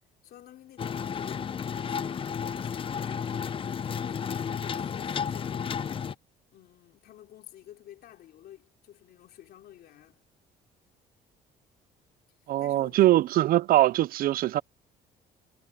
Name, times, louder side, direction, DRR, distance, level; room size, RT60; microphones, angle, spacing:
voice 1, 0.2-3.5 3.8-6.1 6.5-10.2 12.6-13.2, left 12 dB, 65° left, 3.8 m, -51 dB
sound 1, 0.8-6.2, left 7 dB, 30° left, 0.6 m, -32 dB
voice 2, 12.5-14.6, right 15 dB, 60° right, 0.4 m, -22 dB
cardioid pair, 110°, 17 cm